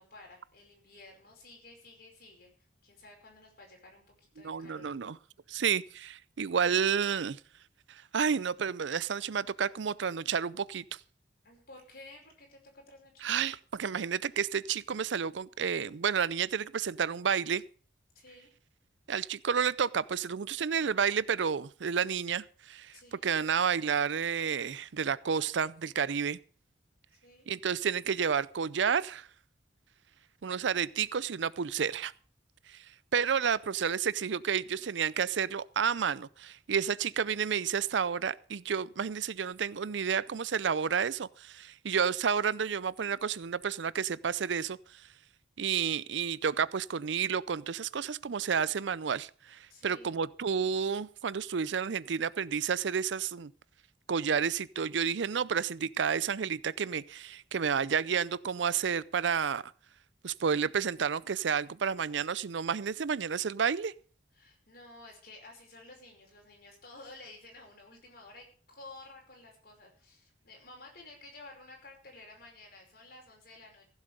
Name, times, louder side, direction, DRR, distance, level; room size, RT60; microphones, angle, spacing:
voice 1, 0.0-2.5 2.8-4.9 11.4-13.3 18.2-18.5 22.9-23.3 27.1-27.5 32.7-32.8 33.2-34.1 49.7-50.1 64.3-73.9, left 2 dB, 55° left, 5.2 m, -53 dB
voice 2, 4.4-5.2 5.5-7.4 8.1-10.8 13.2-17.6 19.1-22.9 23.2-26.4 27.5-29.3 30.4-32.1 33.1-44.8 45.6-53.5 54.1-59.6 60.2-63.9, right 7 dB, 75° right, 0.5 m, -30 dB
15.5 x 7.4 x 6.7 m
head